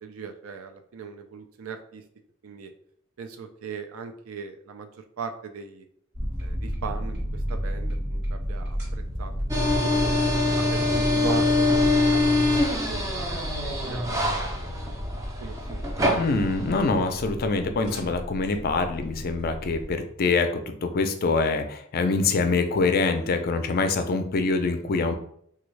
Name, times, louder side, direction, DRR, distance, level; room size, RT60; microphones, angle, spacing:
voice 1, 0.0-2.0 2.4-2.7 3.2-4.9 5.2-5.9 6.4-9.3 9.9-10.0 10.5-14.9 15.4-16.2, right 6 dB, 80° right, 6 dB, 0.4 m, -39 dB
sound 1, 6.1-19.9, equal, 55° right, 1.2 m, -33 dB
sound 2, 9.5-17.3, left 2 dB, 15° right, 0.5 m, -24 dB
voice 2, 16.2-25.1, left 3 dB, 45° left, 7 dB, 0.4 m, -25 dB
3.4 x 2.3 x 3.1 m, 0.65 s
head